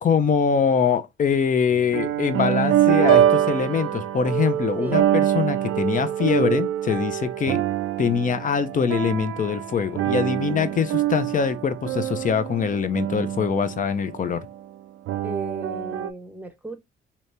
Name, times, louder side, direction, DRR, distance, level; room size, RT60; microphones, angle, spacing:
voice 1, 0.0-7.6 8.0-14.4, left 6 dB, 40° left, 0.5 m, -23 dB
sound 1, 1.7-14.5 15.1-16.1, right 11 dB, 85° right, 0.4 m, -24 dB
voice 2, 4.8-5.1 10.3-10.8 15.2-16.8, right 1 dB, 10° right, 0.8 m, -35 dB
2.9 x 2.8 x 3.2 m
cardioid pair, 90°, 20 cm